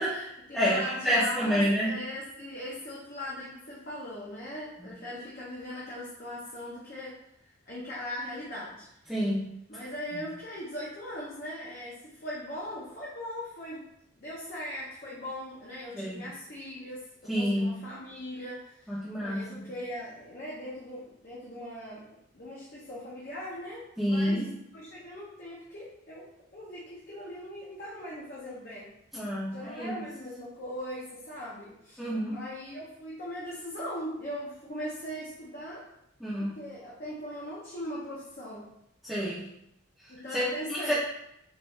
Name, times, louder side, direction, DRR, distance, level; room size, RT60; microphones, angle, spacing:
voice 1, 0.0-8.9 9.7-13.9 14.2-22.1 22.3-24.5 24.7-28.9 29.5-32.0 32.3-35.9 36.4-38.7 40.1-40.9, equal, 45° left, -7 dB, 0.7 m, -40 dB
voice 2, 0.5-2.0 4.8-4.9 9.1-9.5 15.9-16.2 17.3-17.8 18.9-19.7 24.0-24.5 29.1-30.1 32.0-32.4 36.2-36.5 39.0-39.5 40.3-40.9, equal, ahead, -11 dB, 0.6 m, -28 dB
4.5 x 2.4 x 3.1 m, 0.78 s
head